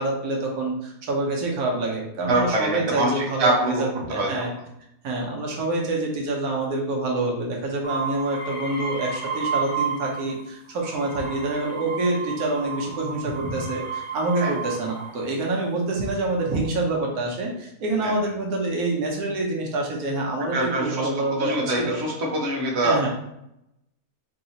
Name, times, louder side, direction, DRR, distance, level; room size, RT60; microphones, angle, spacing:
voice 1, 0.0-4.5 5.0-22.0 22.8-23.1, right 2 dB, 85° right, -1 dB, 1.3 m, -26 dB
voice 2, 2.3-3.8 4.1-4.3 13.4-13.5 14.4-14.5 18.0-18.1 20.5-23.0, right 1 dB, 55° right, -2 dB, 1.0 m, -24 dB
sound 1, 7.8-10.4 10.7-15.3 16.0-16.6, right 6 dB, 40° left, 1.0 m, -32 dB
4.0 x 2.7 x 2.8 m, 0.80 s
omnidirectional pair, 1.5 m